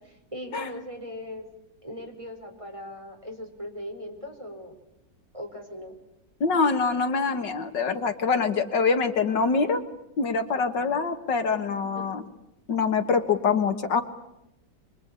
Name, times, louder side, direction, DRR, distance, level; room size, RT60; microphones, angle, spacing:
voice 1, 0.0-1.5 1.8-4.7 5.3-5.9 11.5-12.1, left 1 dB, 15° right, 2 dB, 4.7 m, -39 dB
voice 2, 6.4-9.8 10.2-12.2 12.7-14.0, left 5 dB, 75° left, 8 dB, 2.2 m, -24 dB
24.5 x 24.5 x 8.9 m, 0.87 s
omnidirectional pair, 2.0 m